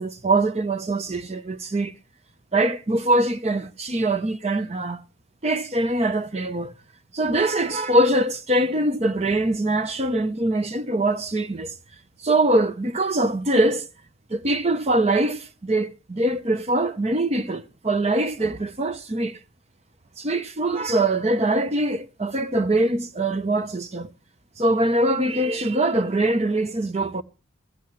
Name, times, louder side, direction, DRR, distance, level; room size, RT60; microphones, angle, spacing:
voice 1, 0.0-2.0 2.5-5.0 5.4-6.7 7.1-11.7 12.2-13.8 14.3-19.4 20.2-24.1 24.6-27.2, right 1 dB, 35° right, 0.7 m, -23 dB
15.5 x 15.5 x 3.1 m
head